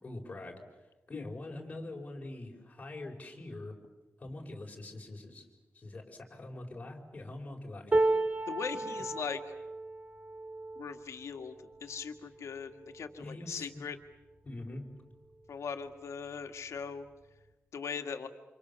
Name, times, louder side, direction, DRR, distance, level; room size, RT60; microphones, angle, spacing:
voice 1, 0.0-0.6 1.1-3.8 4.2-5.5 5.7-8.0 8.7-9.0 13.2-13.8 14.4-14.9, left 2 dB, 30° left, 1 dB, 5.1 m, -44 dB
sound 1, 7.9-14.1 14.6-14.8 15.1-15.9 16.9-17.0, right 2 dB, 30° right, 3.4 m, -34 dB
voice 2, 8.5-9.4 10.8-11.5 11.8-14.0 15.5-17.1 17.7-18.3, left 6 dB, 90° left, 6 dB, 1.9 m, -39 dB
29.0 x 27.5 x 7.0 m, 1.1 s
wide cardioid pair, 150°, 5 cm